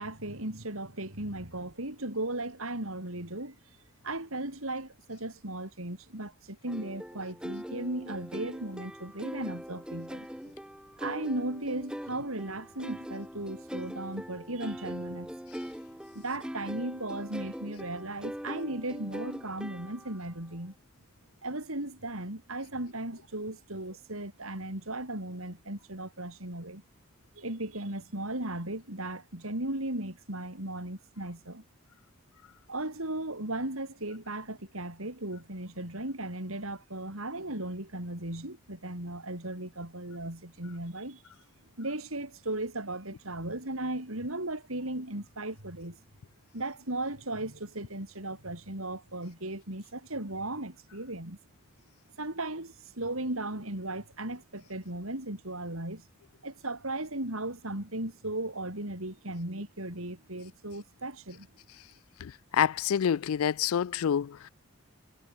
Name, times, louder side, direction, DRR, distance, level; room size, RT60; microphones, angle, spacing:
voice 1, 0.0-3.6 4.0-10.5 11.0-15.3 16.1-20.7 21.4-26.8 27.4-31.6 32.7-41.2 41.8-46.0 46.5-51.4 52.2-56.1 56.4-61.5, right 1 dB, 80° right, 6.4 m, -36 dB
sound 1, 6.7-20.3, equal, 5° right, 2.2 m, -41 dB
voice 2, 62.2-64.5, left 8 dB, 80° left, 0.4 m, -28 dB
head